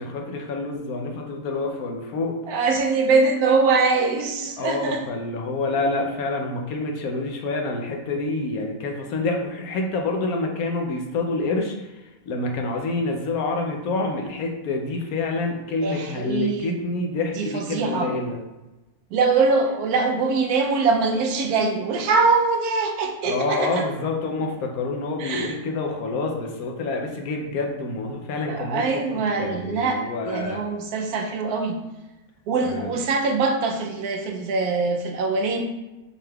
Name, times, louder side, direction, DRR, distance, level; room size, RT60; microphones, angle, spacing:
voice 1, 0.0-2.3 4.6-11.9 12.3-18.4 23.2-30.6 32.6-32.9, left 3 dB, 70° left, 2 dB, 1.1 m, -27 dB
voice 2, 2.5-5.0 15.8-16.8 17.3-18.1 19.1-23.8 25.2-25.5 28.4-31.8 32.5-35.6, right 4 dB, 80° right, 3 dB, 1.1 m, -23 dB
6.5 x 3.5 x 2.3 m, 1.0 s
omnidirectional pair, 1.6 m